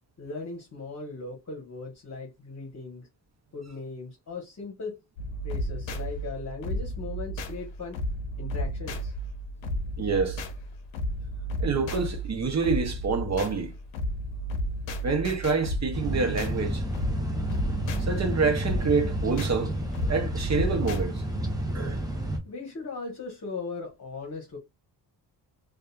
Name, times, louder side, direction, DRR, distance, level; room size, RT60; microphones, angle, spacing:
voice 1, 0.2-3.1 3.5-5.0 5.4-8.0 8.4-9.1 22.4-24.6, left 3 dB, 40° left, 1.1 m, -38 dB
sound 1, 5.2-21.1, equal, 85° left, 0.7 m, -33 dB
voice 2, 10.0-10.4 11.6-13.7 15.0-16.8 18.0-19.8 20.1-21.2 21.7-22.0, right 4 dB, 40° right, 0.7 m, -27 dB
sound 2, 15.9-22.4, equal, 10° right, 0.7 m, -31 dB
2.7 x 2.4 x 2.3 m
cardioid pair, 100°, 44 cm